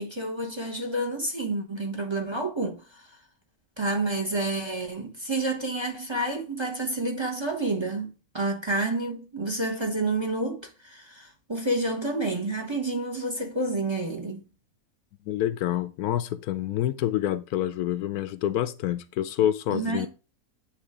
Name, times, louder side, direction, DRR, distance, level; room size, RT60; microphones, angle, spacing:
voice 1, 0.0-3.1 3.8-14.5 19.7-20.1, right 2 dB, 20° right, 1.0 m, -29 dB
voice 2, 15.3-20.1, left 12 dB, 80° left, 1.1 m, -27 dB
8.4 x 3.2 x 4.8 m
omnidirectional pair, 1.6 m